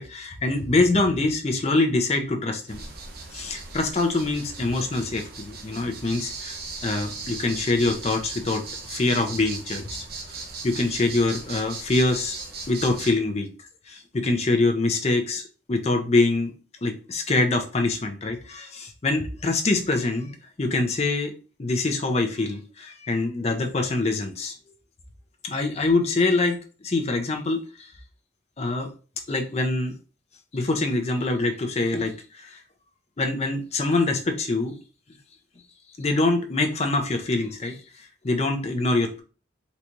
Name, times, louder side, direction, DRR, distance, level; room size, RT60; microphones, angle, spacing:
voice 1, 0.0-2.9 3.3-6.5 6.8-9.9 10.3-12.4 12.7-13.5 13.9-16.5 16.8-20.3 20.6-21.3 21.6-24.5 25.4-26.6 26.8-27.9 28.6-28.9 29.3-29.9 30.5-32.6 33.2-34.8 36.0-39.2, left 2 dB, 35° left, 5 dB, 0.5 m, -24 dB
sound 1, 2.7-13.1, right 3 dB, 50° right, 0.7 m, -38 dB
3.9 x 2.3 x 3.0 m, 0.37 s
head